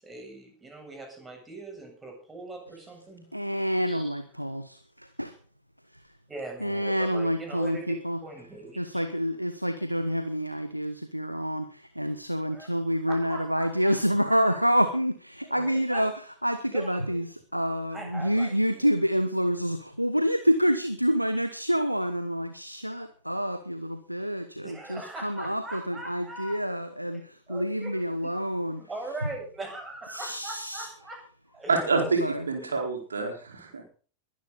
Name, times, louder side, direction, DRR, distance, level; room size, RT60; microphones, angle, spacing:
voice 1, 0.0-3.3 3.9-4.0 6.3-9.1 9.9-10.0 12.5-12.7 13.1-13.9 14.2-14.6 15.4-16.1 16.7-17.2 17.9-18.9 24.6-26.6 27.1-28.3 28.7-31.2 31.5-31.8 32.6-32.7, right 2 dB, 15° right, 7.5 m, -41 dB
voice 2, 3.3-5.3 6.6-8.2 8.8-16.1 16.4-28.8 30.1-30.9 31.9-32.8, equal, 90° right, 1.1 m, -28 dB
voice 3, 31.7-33.8, right 4 dB, 70° right, 4.5 m, -27 dB
21.5 x 12.0 x 4.1 m
figure-of-eight pair, 90°, 0 cm